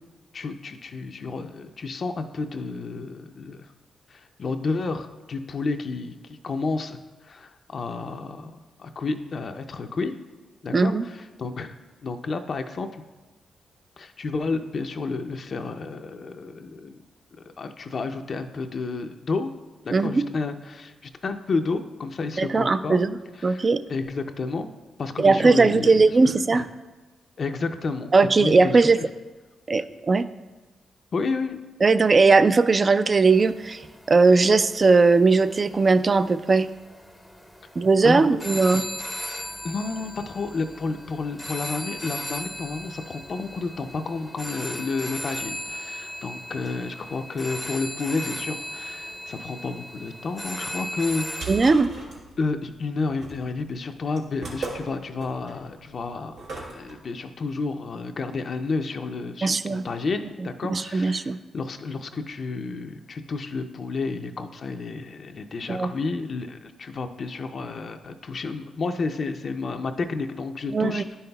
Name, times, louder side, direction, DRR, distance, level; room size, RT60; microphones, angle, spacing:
voice 1, 0.3-3.7 4.1-10.2 10.6-11.8 12.0-13.0 14.0-17.0 17.6-19.5 19.8-23.0 23.5-24.7 25.0-26.7 27.4-29.0 31.1-31.6 38.0-38.3 38.7-38.9 39.6-51.5 52.4-56.4 56.7-71.2, left 3 dB, 60° left, 6 dB, 0.4 m, -31 dB
voice 2, 10.7-11.0 19.9-20.3 22.4-23.2 23.4-23.8 25.2-26.6 28.1-29.0 29.7-30.2 31.8-33.8 34.1-36.7 37.8-38.8 51.5-51.9 59.4-59.8 60.7-61.4 65.7-65.9 70.7-71.0, right 4 dB, 45° right, 12 dB, 0.3 m, -19 dB
sound 1, 33.3-51.7, left 1 dB, 5° left, 0.6 m, -37 dB
sound 2, 51.0-56.9, right 3 dB, 85° right, 1.4 m, -38 dB
10.0 x 5.5 x 2.3 m, 1.2 s
supercardioid pair, 50°, 0 cm